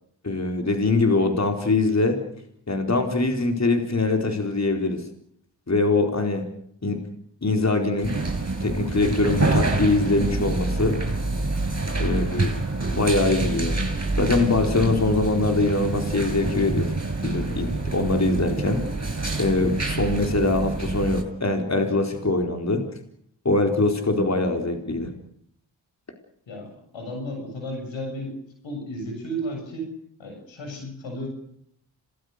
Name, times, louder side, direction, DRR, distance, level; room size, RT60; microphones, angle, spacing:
voice 1, 0.2-2.2 2.7-5.0 5.7-6.4 6.8-7.0 7.4-8.1 8.6-11.0 12.0-12.5 12.9-13.8 14.2-16.9 17.2-18.8 19.4-22.8 23.4-25.1, left 2 dB, 35° left, 4 dB, 4.4 m, -23 dB
sound 1, 8.0-21.2, right 2 dB, 35° right, 7.7 m, -27 dB
voice 2, 26.5-29.9 30.2-31.3, equal, 85° left, 4 dB, 7.2 m, -33 dB
27.0 x 19.0 x 6.7 m, 0.68 s
cardioid pair, 45°, 44 cm